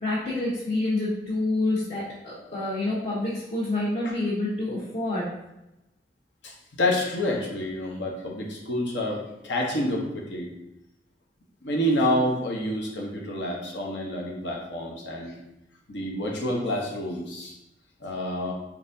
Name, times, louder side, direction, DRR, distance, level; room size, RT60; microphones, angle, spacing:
voice 1, 0.0-5.3, left 2 dB, 45° left, -9 dB, 1.2 m, -27 dB
voice 2, 6.8-10.5 11.6-15.3 15.9-17.5 18.0-18.5, left 1 dB, 80° left, -1 dB, 1.0 m, -28 dB
4.4 x 3.9 x 2.7 m, 0.90 s
head